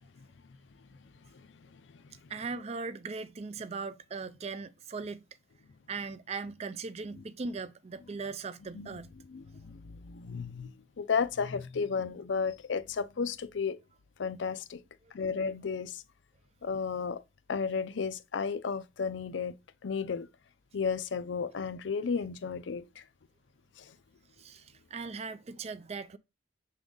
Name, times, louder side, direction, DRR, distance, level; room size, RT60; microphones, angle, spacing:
voice 1, 1.7-2.1 8.7-9.0 9.3-13.8 14.2-14.8 15.1-16.0 16.6-17.2 17.5-19.5 19.8-20.3 20.7-23.0 23.8-23.9, left 5 dB, 75° left, 0.5 m, -33 dB
voice 2, 2.3-5.3 5.9-9.1 15.0-15.1 24.4-26.2, right 4 dB, 35° right, 0.4 m, -39 dB
7.0 x 3.8 x 3.8 m
head